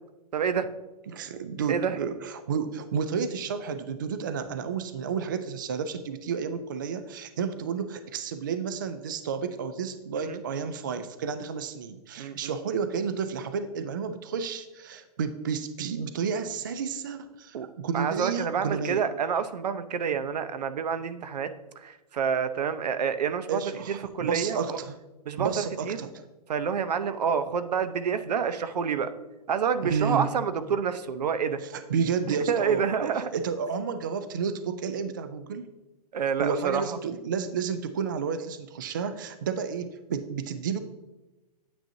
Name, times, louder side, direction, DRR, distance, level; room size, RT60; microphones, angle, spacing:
voice 1, 0.3-0.7 1.7-2.0 10.1-10.4 12.2-12.5 17.5-17.7 17.9-23.6 23.9-24.8 25.3-26.0 26.5-29.1 29.5-31.6 32.3-33.3 36.1-37.0, right 7 dB, 80° right, 12 dB, 0.8 m, -28 dB
voice 2, 1.1-19.1 23.5-25.0 25.4-26.2 29.8-30.3 31.7-35.7 36.4-40.8, right 6 dB, 30° right, 11 dB, 0.3 m, -31 dB
9.0 x 8.8 x 2.7 m, 1.1 s
hypercardioid pair, 180°, 20 cm